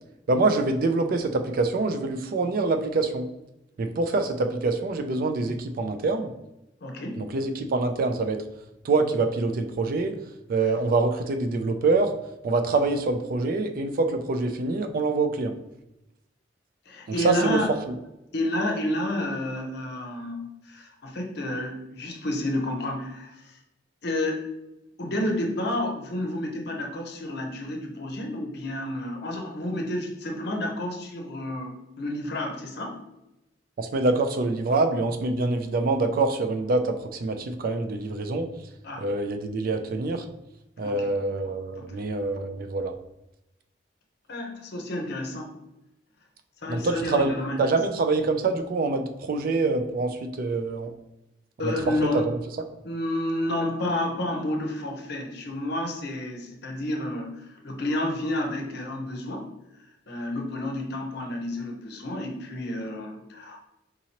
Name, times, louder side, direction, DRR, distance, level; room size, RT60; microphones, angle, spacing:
voice 1, 0.3-3.3 3.8-6.3 7.2-8.4 8.8-10.1 10.5-12.1 12.4-15.6 17.2-17.6 17.9-18.0 33.8-38.5 39.0-40.3 40.8-43.0 46.7-47.3 47.6-50.9 51.6-52.4, right 3 dB, 50° right, 7 dB, 0.3 m, -25 dB
voice 2, 6.8-7.3 16.9-17.7 18.3-23.6 24.0-24.4 25.0-33.0 38.8-39.1 40.8-41.1 41.8-41.9 44.3-45.5 46.6-47.8 51.6-52.2 52.8-59.5 60.1-63.6, left 1 dB, 60° left, 2 dB, 0.7 m, -30 dB
3.8 x 2.8 x 2.9 m, 0.90 s
head